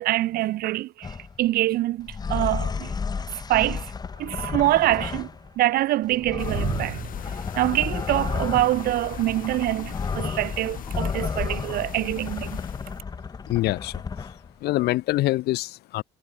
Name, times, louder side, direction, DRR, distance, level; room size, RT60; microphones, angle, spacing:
voice 1, 0.0-2.9 3.5-3.9 4.2-5.3 5.6-7.1 7.6-12.6, right 16 dB, 65° right, 0.4 m, -25 dB
Predator creatures, 1.0-1.4 2.0-5.5 6.0-14.5, left 5 dB, 25° left, 0.8 m, -32 dB
sound 1, 6.4-13.0, left 10 dB, 55° left, 6.5 m, -39 dB
voice 2, 13.5-14.3 14.6-16.0, left 17 dB, 75° left, 0.5 m, -25 dB
cardioid pair, 110°, 17 cm